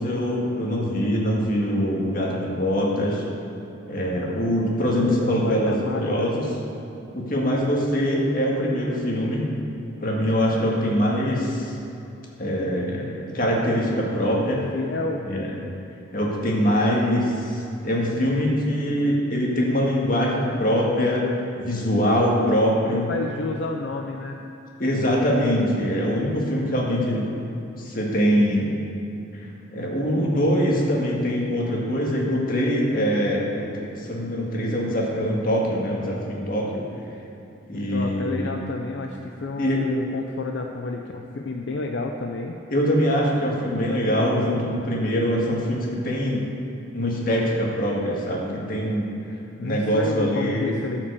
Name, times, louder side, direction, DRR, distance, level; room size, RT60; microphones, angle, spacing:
voice 1, 0.0-3.2 3.9-6.5 7.1-9.5 10.0-11.8 12.4-14.6 15.3-15.5 16.1-21.3 21.6-23.1 24.8-27.3 27.8-28.7 29.3-36.8 37.7-38.5 39.6-39.8 42.7-46.4 46.9-49.1 49.6-50.7, equal, 45° left, -3 dB, 1.9 m, -23 dB
voice 2, 5.2-6.3 14.7-15.3 22.9-24.4 37.7-42.6 49.6-51.1, left 3 dB, 70° left, 3 dB, 0.6 m, -30 dB
12.5 x 5.9 x 6.9 m, 2.9 s
head